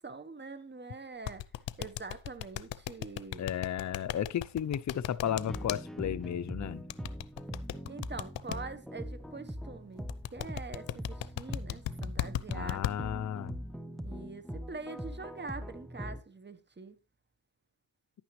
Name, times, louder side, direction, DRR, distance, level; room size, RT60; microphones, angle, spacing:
voice 1, 0.0-1.5 1.8-3.5 7.9-12.8 14.0-17.0, right 4 dB, 25° right, 1.1 m, -44 dB
sound 1, 1.3-5.8 6.9-8.6 10.1-12.9, left 14 dB, 85° left, 0.6 m, -35 dB
voice 2, 3.4-6.8 12.5-13.5, left 10 dB, 40° left, 0.6 m, -34 dB
sound 2, 5.2-16.2, equal, ahead, 1.0 m, -42 dB
10.5 x 8.9 x 3.1 m
cardioid pair, 65°, 43 cm